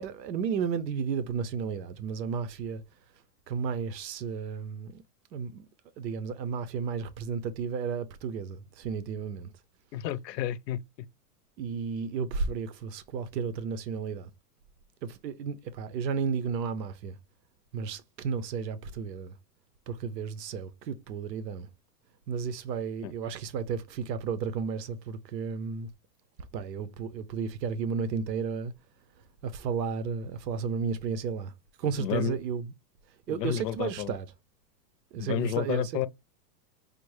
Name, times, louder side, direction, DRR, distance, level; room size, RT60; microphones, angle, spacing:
voice 1, 0.0-2.8 3.5-5.0 5.3-5.7 6.0-9.5 11.6-14.3 15.0-17.2 17.7-19.4 19.9-21.7 22.3-25.9 26.5-28.7 29.4-31.5 31.8-32.6 33.3-34.3 35.1-36.1, right 6 dB, 90° right, 0.8 m, -33 dB
voice 2, 9.9-10.8 23.0-23.1 32.0-32.4 33.3-34.1 35.2-36.1, left 11 dB, 85° left, 0.6 m, -31 dB
5.0 x 2.1 x 3.1 m
supercardioid pair, 175°, 48 cm